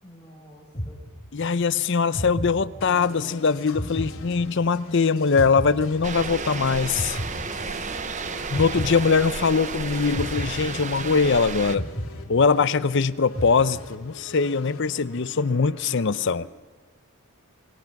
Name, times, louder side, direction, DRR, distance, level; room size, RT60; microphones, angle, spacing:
voice 1, 0.0-1.0 3.9-4.0 7.6-8.3, left 1 dB, 10° left, 5.5 m, -48 dB
sound 1, 0.7-1.6 2.1-3.2 3.7-4.9 5.3-6.5 6.9-8.1 8.5-9.6 10.1-11.3 11.7-12.9 13.3-14.2, equal, 30° left, 2.9 m, -34 dB
voice 2, 1.3-7.2 8.5-11.9 12.3-16.5, left 5 dB, 55° left, 0.6 m, -22 dB
sound 2, 2.8-16.5, left 3 dB, 75° left, 2.7 m, -45 dB
quarry near by, 6.0-11.8, right 5 dB, 35° right, 0.8 m, -32 dB
28.0 x 20.5 x 5.9 m
head